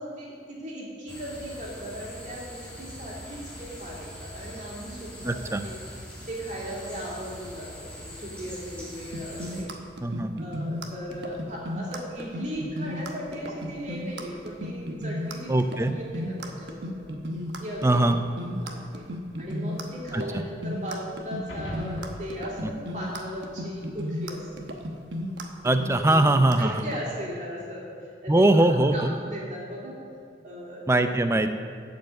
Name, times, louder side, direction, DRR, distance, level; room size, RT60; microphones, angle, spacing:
voice 1, 0.0-5.3 5.6-5.8 6.3-9.7 10.4-17.0 17.6-18.0 18.5-19.1 19.4-24.7 26.0-26.2 26.6-27.8 28.2-30.0 30.4-31.3, equal, 40° right, -5 dB, 2.7 m, -37 dB
sound 1, 1.1-9.6, equal, 5° left, 2.2 m, -42 dB
voice 2, 5.2-5.6 10.0-10.3 15.5-15.9 17.8-18.2 20.1-20.2 22.6-22.7 25.6-26.8 28.3-29.2 30.9-31.6, right 1 dB, 15° right, 8 dB, 0.4 m, -21 dB
sound 2, 9.1-27.0, equal, 80° right, 1.0 m, -34 dB
sound 3, 21.5-24.0, left 1 dB, 75° left, 1.9 m, -42 dB
12.0 x 5.3 x 7.9 m, 2.3 s
head